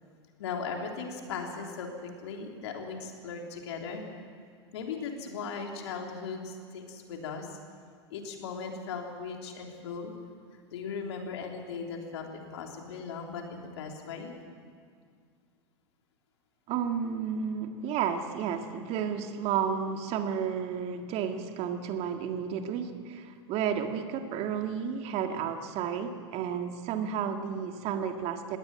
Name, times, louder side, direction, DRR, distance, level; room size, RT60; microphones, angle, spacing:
voice 1, 0.4-4.0 4.7-7.6 8.1-10.1 10.5-14.3, left 5 dB, 70° left, 2 dB, 3.5 m, -38 dB
voice 2, 16.7-28.6, right 7 dB, 45° right, 6 dB, 1.9 m, -32 dB
20.5 x 18.0 x 8.9 m, 2.1 s
hypercardioid pair, 95°, 15 cm